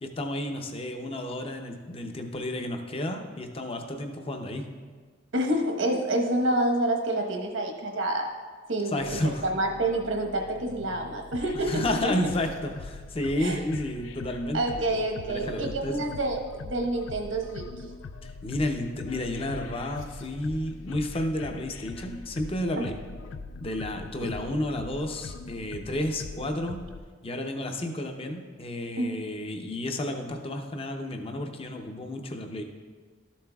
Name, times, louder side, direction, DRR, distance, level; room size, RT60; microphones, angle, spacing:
voice 1, 0.0-4.6 8.9-9.5 11.5-14.6 14.9-15.0 15.2-16.1 18.2-23.0 23.6-26.9 27.2-32.6, left 1 dB, 30° left, 4 dB, 0.6 m, -31 dB
voice 2, 5.3-8.3 8.7-12.3 13.4-13.6 14.5-17.8 22.7-22.8 24.2-24.3 29.0-29.1, right 1 dB, 85° right, 1 dB, 1.1 m, -28 dB
sound 1, 9.0-27.0, left 3 dB, 85° left, 0.4 m, -42 dB
13.0 x 7.3 x 2.3 m, 1.5 s
head